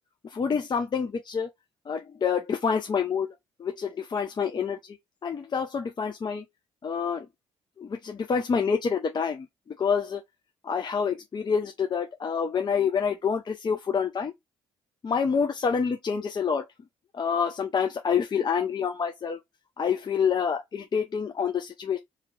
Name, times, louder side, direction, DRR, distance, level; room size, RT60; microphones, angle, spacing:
voice 1, 0.2-1.5 1.9-3.3 3.6-5.0 5.2-6.4 6.8-7.3 7.8-10.2 10.6-14.3 15.0-16.7 17.1-19.4 19.8-22.0, left 6 dB, 40° left, 0.7 m, -27 dB
3.1 x 2.8 x 3.7 m
supercardioid pair, 60°, 11 cm